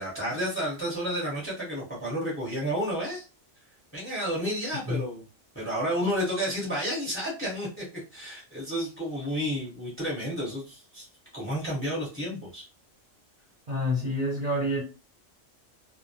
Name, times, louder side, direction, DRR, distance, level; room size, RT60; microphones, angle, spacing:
voice 1, 0.0-3.2 3.9-5.2 5.5-7.8 8.1-11.1 11.3-12.7, equal, 10° left, 0.8 m, -31 dB
voice 2, 13.7-14.8, left 1 dB, 40° right, 0.7 m, -27 dB
2.1 x 2.1 x 2.7 m
omnidirectional pair, 1.3 m